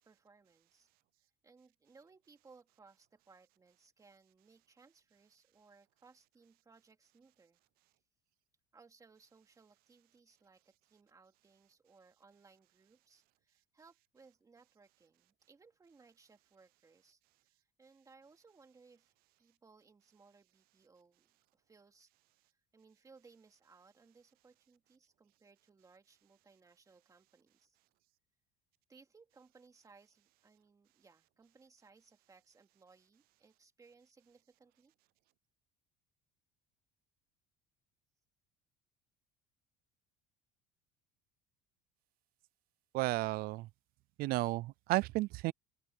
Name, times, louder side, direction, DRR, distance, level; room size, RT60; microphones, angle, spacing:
voice 1, 0.1-0.9 1.4-7.6 8.7-22.1 22.5-27.8 28.9-34.9, right 4 dB, 20° right, 2.8 m, -64 dB
voice 2, 42.9-43.7 44.2-45.5, right 20 dB, 55° right, 0.4 m, -33 dB
open air
cardioid pair, 130°, 18 cm